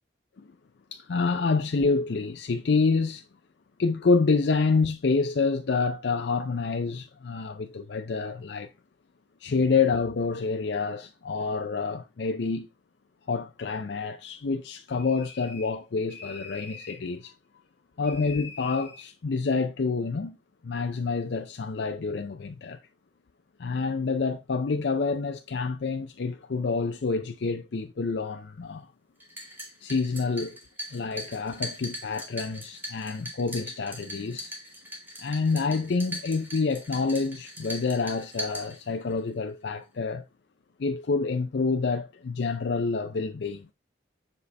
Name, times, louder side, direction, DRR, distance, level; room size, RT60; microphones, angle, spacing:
voice 1, 0.9-3.3 3.8-8.7 9.4-12.7 13.3-17.3 18.0-20.4 20.6-22.8 23.6-28.9 29.8-30.6 30.9-34.5 35.2-40.2 40.8-43.7, left 4 dB, 65° left, 0.5 m, -27 dB
sound 1, 15.0-15.8 16.1-17.0 18.0-19.1, left 4 dB, 10° left, 1.6 m, -44 dB
sound 2, 29.2-39.2, equal, 10° right, 1.4 m, -40 dB
7.3 x 4.1 x 3.3 m
head